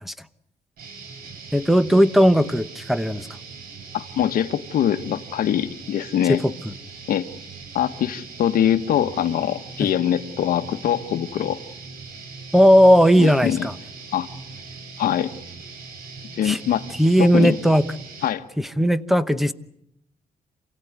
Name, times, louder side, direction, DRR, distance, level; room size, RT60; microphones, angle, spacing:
sound 1, 0.8-18.3, right 4 dB, 85° right, 4.1 m, -40 dB
voice 1, 1.5-3.3 6.3-6.7 9.8-9.9 12.5-13.7 16.4-16.6 17.0-17.8 18.6-19.5, equal, ahead, 13 dB, 0.9 m, -17 dB
voice 2, 3.9-6.4 7.1-7.3 7.7-11.6 13.2-13.7 14.1-14.3 15.0-15.3 16.4-16.9 17.2-17.5 18.2-18.4, left 10 dB, 75° left, 8 dB, 1.2 m, -23 dB
28.5 x 16.5 x 9.5 m, 0.78 s
cardioid pair, 140°, 15 cm